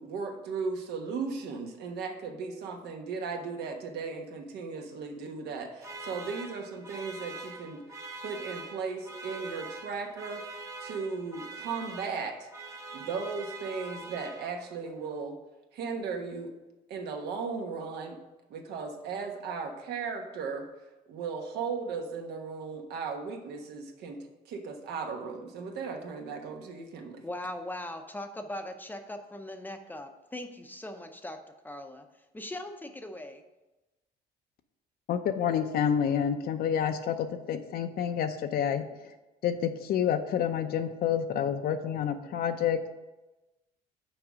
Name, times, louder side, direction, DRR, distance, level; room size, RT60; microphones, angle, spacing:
voice 1, 0.0-12.5 12.9-15.4 15.7-16.5 16.9-18.2 18.5-20.6 21.1-27.2, right 5 dB, 75° right, 4 dB, 1.2 m, -36 dB
sound 1, 5.8-14.8, right 3 dB, 20° right, 0.8 m, -43 dB
voice 2, 27.2-31.4 31.6-32.1 32.3-33.4, left 1 dB, 10° left, 6 dB, 0.6 m, -40 dB
voice 3, 35.1-38.9 39.4-42.9, left 8 dB, 65° left, 7 dB, 0.6 m, -28 dB
6.2 x 4.7 x 6.2 m, 1.1 s
cardioid pair, 110°, 17 cm